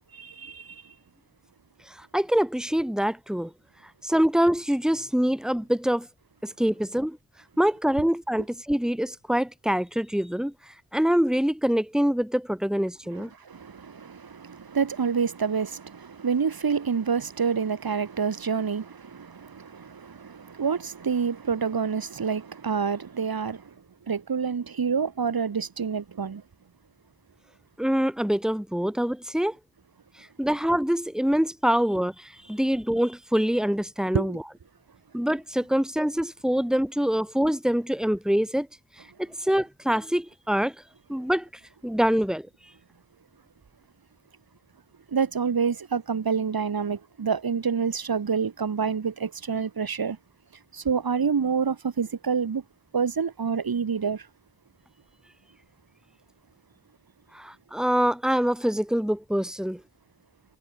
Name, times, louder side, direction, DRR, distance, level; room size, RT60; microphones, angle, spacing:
voice 1, 0.1-0.9 13.1-23.7 24.1-26.4 34.1-34.4 45.1-50.2 50.7-52.6 52.9-54.3, right 6 dB, 75° right, 5.0 m, -28 dB
voice 2, 1.9-3.5 4.0-6.1 6.4-7.2 7.6-13.3 27.8-29.6 30.2-34.4 35.1-38.7 39.2-40.7 41.1-41.5 41.8-42.5 57.3-59.8, equal, ahead, 3.3 m, -25 dB
cardioid pair, 50°, 36 cm